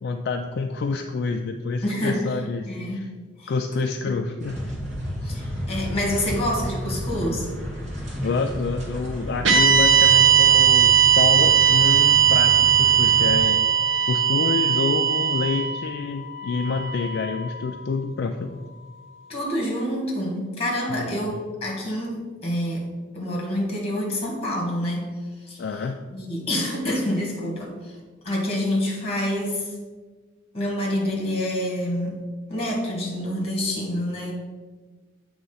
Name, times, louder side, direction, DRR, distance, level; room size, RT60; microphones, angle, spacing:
voice 1, 0.0-3.1 3.5-4.6 8.2-13.6 14.1-18.6 21.0-21.4 25.6-26.0, left 4 dB, 55° left, 4 dB, 0.3 m, -28 dB
voice 2, 1.8-2.4 2.6-3.1 3.4-3.5 4.0-4.2 5.2-7.5 19.3-22.9 23.1-25.1 25.4-25.7 26.1-28.0 28.2-29.7 30.5-34.3, left 1 dB, 30° left, -1 dB, 1.7 m, -27 dB
sound 1, 4.4-13.4, equal, 35° right, 1.6 m, -32 dB
sound 2, 9.4-17.7, right 8 dB, 75° right, 0.9 m, -19 dB
7.8 x 3.1 x 5.5 m, 1.4 s
head